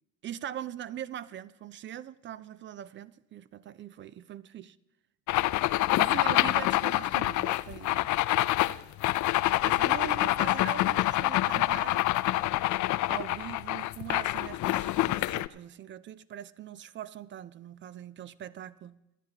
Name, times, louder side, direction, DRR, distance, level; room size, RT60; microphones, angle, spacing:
voice 1, 0.2-4.8 6.0-8.0 9.6-12.1 13.1-19.0, right 10 dB, 25° right, 0.3 m, -41 dB
sound 1, 5.3-15.5, left 17 dB, 40° left, 0.4 m, -26 dB
26.0 x 9.9 x 2.9 m
hypercardioid pair, 75°, 49 cm